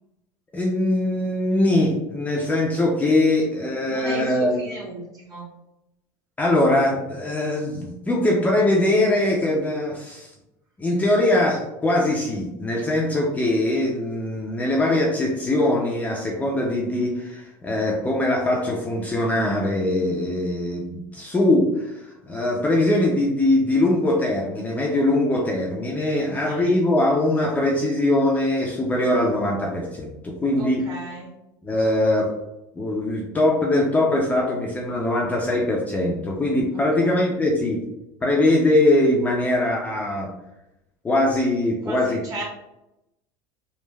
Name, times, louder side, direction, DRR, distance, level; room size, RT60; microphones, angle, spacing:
voice 1, 0.5-4.6 6.4-10.3 10.8-30.9 31.6-32.3 32.8-37.8 38.2-40.3 41.0-42.2, left 1 dB, 15° left, -2 dB, 0.4 m, -22 dB
voice 2, 3.9-5.5 26.1-26.8 30.6-31.3 36.7-37.2 41.8-42.4, right 2 dB, 40° right, -5 dB, 1.4 m, -36 dB
3.2 x 2.3 x 2.2 m, 0.91 s
supercardioid pair, 120°, 10 cm